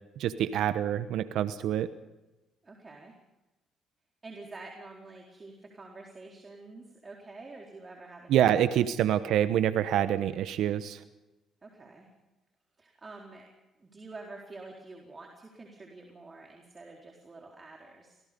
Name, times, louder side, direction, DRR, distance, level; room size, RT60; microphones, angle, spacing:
voice 1, 0.2-1.9 8.3-11.0, right 10 dB, 70° right, 11 dB, 1.0 m, -26 dB
voice 2, 2.6-3.1 4.2-8.7 11.6-12.1 12.8-13.5 13.8-18.2, right 3 dB, 30° right, 0 dB, 4.2 m, -48 dB
26.5 x 18.5 x 5.3 m, 1.0 s
supercardioid pair, 65°, 0 cm